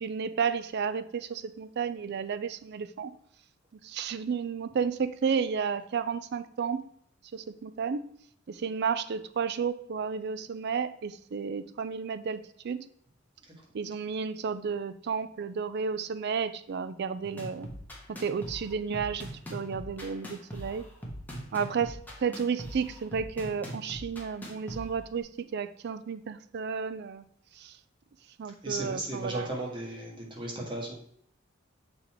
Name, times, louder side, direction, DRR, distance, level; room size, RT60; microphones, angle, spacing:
voice 1, 0.0-3.1 3.8-6.8 7.3-8.1 8.5-12.8 13.7-17.7 18.1-20.8 21.5-27.2 27.5-27.8 28.4-29.5, right 6 dB, 55° right, 13 dB, 0.4 m, -32 dB
sound 1, 17.2-25.2, equal, 10° left, 1.4 m, -42 dB
voice 2, 28.6-30.9, right 2 dB, 25° right, -3 dB, 1.8 m, -35 dB
6.8 x 4.0 x 4.4 m, 0.65 s
head